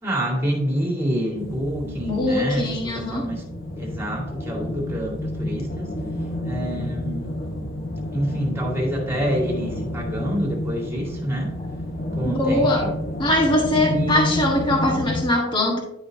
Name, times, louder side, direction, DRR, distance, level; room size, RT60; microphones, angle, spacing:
voice 1, 0.0-3.4 3.8-6.0 6.4-7.4 8.1-11.6 12.1-12.9 13.9-15.1, equal, 10° right, 2.2 m, -27 dB
sound 1, 1.4-15.2, left 1 dB, 50° left, 1.3 m, -30 dB
voice 2, 1.8-3.3 12.3-12.9 13.2-15.8, left 1 dB, 25° left, 1.5 m, -22 dB
11.0 x 5.5 x 2.8 m
head